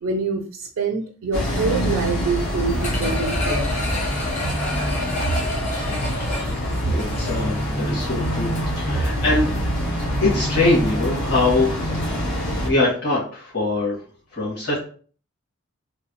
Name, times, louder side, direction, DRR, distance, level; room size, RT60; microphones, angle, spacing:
voice 1, 0.0-3.7, right 4 dB, 80° right, 2 dB, 0.4 m, -26 dB
sound 1, 1.3-12.7, equal, 75° left, 1.3 m, -25 dB
sound 2, 2.8-7.6 8.0-8.1, left 2 dB, 35° left, 0.9 m, -29 dB
voice 2, 6.8-8.5 8.7-9.5 10.2-11.8 12.2-14.0 14.3-14.8, left 2 dB, 50° left, -8 dB, 1.7 m, -23 dB
3.2 x 2.7 x 3.0 m, 0.43 s
head